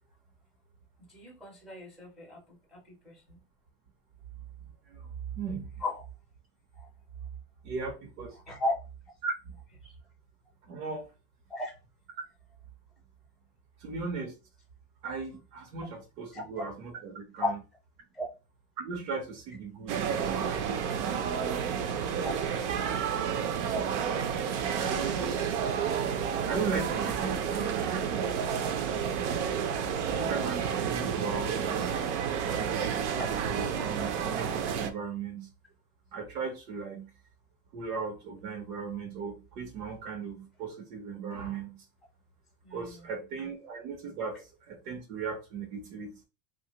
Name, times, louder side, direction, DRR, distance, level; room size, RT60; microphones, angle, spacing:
voice 1, 1.1-2.4 2.7-2.8 3.0-3.4 5.8-6.0 6.7-6.9 8.5-8.7 9.8-9.9 11.5-11.7 16.3-16.4 17.4-17.5 18.1-18.3 22.2-22.3 33.1-33.3 42.6-43.0, left 2 dB, ahead, 0.4 m, -35 dB
voice 2, 4.9-5.7 7.6-8.4 9.2-9.5 10.6-11.1 13.8-14.3 15.0-17.6 18.8-22.1 24.8-26.0 26.5-28.2 30.1-32.1 32.4-35.5 36.1-37.1 37.7-41.8 42.7-46.2, right 5 dB, 85° right, 1.0 m, -37 dB
sound 1, 19.9-34.9, right 7 dB, 55° right, 0.5 m, -30 dB
3.2 x 2.5 x 2.8 m
supercardioid pair, 180°, 43 cm